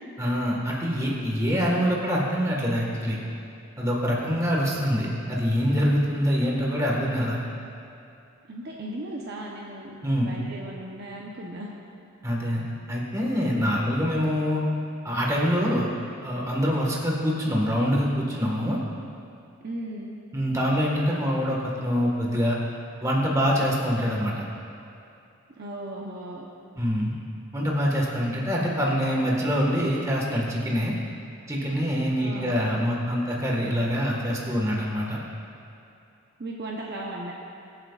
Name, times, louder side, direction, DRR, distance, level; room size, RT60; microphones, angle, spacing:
voice 1, 0.2-3.2 3.8-7.4 10.0-10.3 12.2-12.6 12.9-14.6 15.0-15.9 16.2-18.8 20.3-22.6 23.0-24.4 26.8-27.1 27.5-30.9 31.5-35.2, equal, 15° right, -3 dB, 1.6 m, -25 dB
voice 2, 8.5-11.7 19.6-20.1 25.6-26.4 32.2-32.6 36.4-37.3, right 1 dB, 45° right, -2 dB, 0.8 m, -36 dB
23.0 x 7.9 x 2.5 m, 2.7 s
head